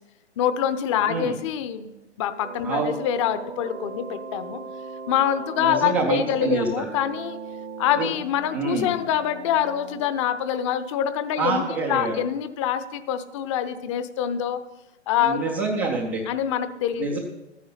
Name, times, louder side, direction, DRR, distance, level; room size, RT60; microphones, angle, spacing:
voice 1, 0.4-4.6 5.1-7.4 7.8-14.6 15.1-15.4 16.3-17.2, left 9 dB, 25° left, 12 dB, 0.7 m, -25 dB
sound 1, 2.4-10.0, right 4 dB, 90° right, 2.3 m, -38 dB
voice 2, 2.6-2.9 5.6-6.9 8.0-8.1 8.5-8.9 11.4-12.1 15.2-16.2 17.0-17.2, right 3 dB, 10° right, -2 dB, 0.3 m, -26 dB
13.5 x 9.4 x 5.6 m, 0.99 s
figure-of-eight pair, 120°, 34 cm